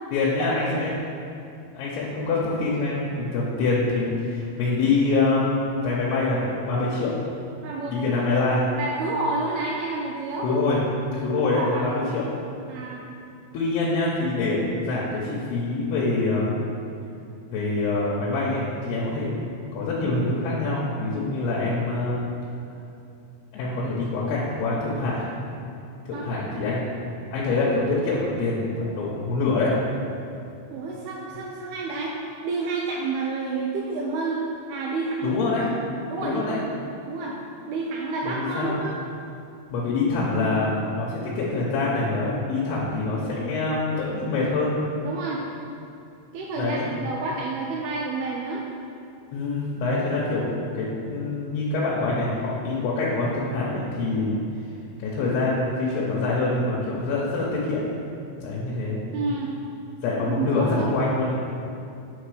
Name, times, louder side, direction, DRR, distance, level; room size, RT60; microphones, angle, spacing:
voice 1, 0.1-0.9 1.7-5.5 5.8-7.1 7.9-8.6 10.4-10.8 11.1-12.2 13.5-16.6 17.5-19.3 19.7-22.1 23.5-25.3 26.1-26.9 27.3-29.7 35.2-35.7 36.2-36.6 38.2-38.7 39.7-44.7 46.6-46.9 49.3-54.4 55.0-57.8 58.4-59.0 60.0-61.5, left 3 dB, 80° left, -6 dB, 2.7 m, -25 dB
voice 2, 7.6-8.0 8.8-10.5 11.5-12.2 12.7-13.0 26.1-26.6 30.7-32.1 32.4-35.4 36.1-36.7 37.1-37.4 37.7-39.0 45.0-45.5 46.3-48.6 59.1-59.5 60.1-60.9, right 3 dB, 85° right, -2 dB, 2.2 m, -29 dB
8.1 x 3.6 x 4.9 m, 2.6 s
omnidirectional pair, 5.0 m